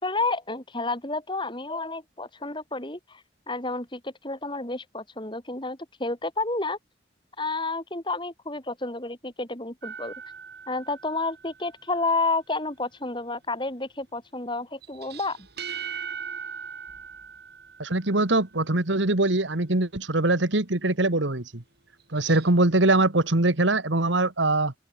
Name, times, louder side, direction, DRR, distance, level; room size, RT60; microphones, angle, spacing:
voice 1, 0.0-6.8 7.4-10.1 10.7-15.4, left 3 dB, 25° left, 4.8 m, -30 dB
sound 1, 9.8-11.8 14.8-18.5 22.0-22.5, right 6 dB, 55° right, 7.6 m, -39 dB
voice 2, 17.8-21.6 22.1-24.7, right 2 dB, 70° right, 1.9 m, -22 dB
open air
head